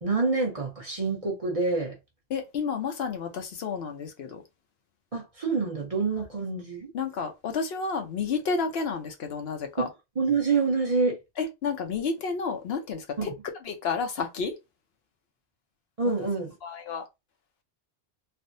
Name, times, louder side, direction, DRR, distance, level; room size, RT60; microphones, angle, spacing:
voice 1, 0.0-1.9 5.1-6.9 9.8-9.9 10.2-11.2 13.2-13.3 16.0-16.5, right 4 dB, 35° right, 0.9 m, -27 dB
voice 2, 2.3-4.4 6.9-9.9 11.4-13.3 13.6-14.6 16.6-17.0, left 5 dB, 65° left, 0.9 m, -31 dB
3.4 x 2.1 x 2.6 m
omnidirectional pair, 1.1 m